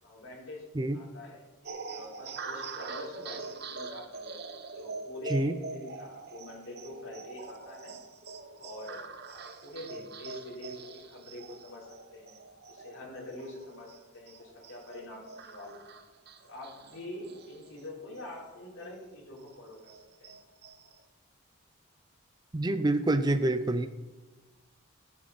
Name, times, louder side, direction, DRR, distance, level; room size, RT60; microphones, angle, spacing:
voice 1, 0.0-0.6 0.9-4.4 4.7-7.9 8.6-12.4 12.7-15.8 16.4-19.9 20.2-20.3, left 1 dB, 70° left, -4 dB, 4.0 m, -45 dB
sound 1, 1.6-18.5 18.9-19.0 19.4-21.0, right 4 dB, 50° right, 0.9 m, -44 dB
voice 2, 22.5-23.9, right 1 dB, 20° right, 10 dB, 0.4 m, -26 dB
14.0 x 9.3 x 4.2 m, 1.2 s
head